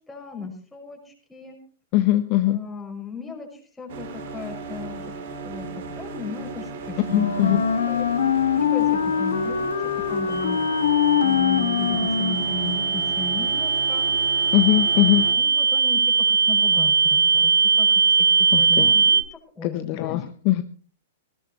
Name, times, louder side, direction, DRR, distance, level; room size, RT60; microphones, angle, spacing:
voice 1, 0.0-1.6 2.4-5.1 5.4-8.1 8.5-10.6 11.2-14.1 14.9-17.5 17.8-17.9 18.4-19.2 19.6-20.2, left 4 dB, 5° left, 0 dB, 5.9 m, -36 dB
voice 2, 1.9-2.6 7.1-7.6 14.5-15.2 18.5-18.9 19.6-20.6, left 15 dB, 40° left, 10 dB, 1.0 m, -21 dB
sound 1, 3.9-15.3, right 4 dB, 55° right, 3.3 m, -36 dB
Wind instrument woodwind instrument, 7.0-12.9, left 7 dB, 70° left, 1.8 m, -23 dB
sound 2, 10.3-19.2, right 5 dB, 85° right, 1.6 m, -21 dB
19.5 x 17.5 x 3.1 m, 0.40 s
figure-of-eight pair, 105°, 0 cm